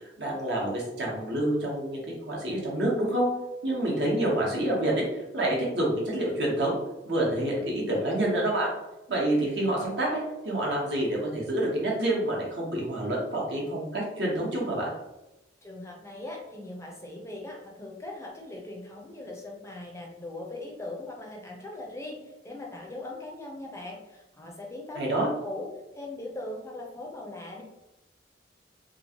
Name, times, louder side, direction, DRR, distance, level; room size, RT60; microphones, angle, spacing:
voice 1, 0.2-3.3 3.6-5.0 5.3-6.8 7.0-8.7 9.1-14.9 25.0-25.3, right 1 dB, 70° right, -2 dB, 0.9 m, -27 dB
voice 2, 15.6-27.6, left 2 dB, 15° left, 0 dB, 0.5 m, -40 dB
3.0 x 2.4 x 2.8 m, 0.94 s
head